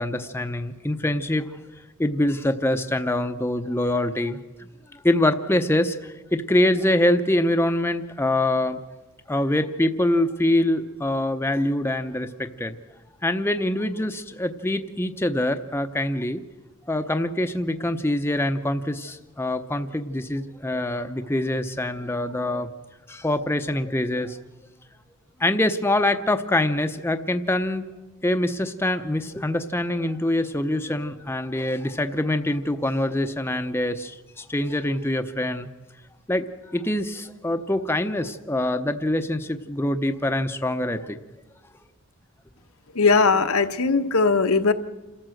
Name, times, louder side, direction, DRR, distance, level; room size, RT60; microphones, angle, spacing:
voice 1, 0.0-1.5 2.0-8.8 9.3-12.8 13.2-16.4 16.8-22.7 23.1-24.4 25.4-27.8 28.2-35.7 36.3-41.2, left 1 dB, 10° left, 7 dB, 0.7 m, -24 dB
voice 2, 42.9-44.7, left 4 dB, 80° left, 8 dB, 1.1 m, -19 dB
28.0 x 14.0 x 7.8 m, 1.2 s
head